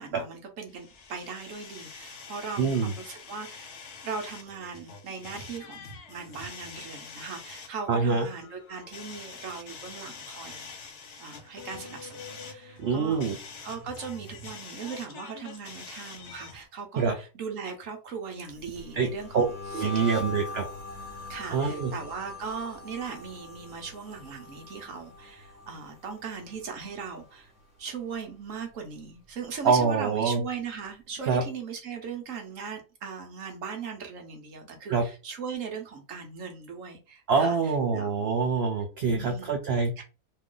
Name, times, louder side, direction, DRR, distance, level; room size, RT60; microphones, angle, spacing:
voice 1, 0.0-3.7 4.0-10.7 11.2-13.3 13.6-19.4 19.7-20.1 21.3-27.5 27.8-38.4 39.1-39.5 40.0-40.1, right 5 dB, 65° right, 0.9 m, -39 dB
sound 1, 0.7-16.7, left 5 dB, 55° left, 0.9 m, -45 dB
voice 2, 2.6-2.9 7.9-8.3 12.8-13.4 17.0-17.1 18.9-19.4 19.7-20.7 21.5-21.9 29.6-30.4 31.2-31.4 34.9-35.1 37.3-40.0, right 5 dB, 90° right, 0.5 m, -25 dB
sound 2, 18.5-27.6 27.9-28.3 28.7-30.2, left 3 dB, 10° right, 1.4 m, -43 dB
3.1 x 2.4 x 3.6 m
omnidirectional pair, 1.7 m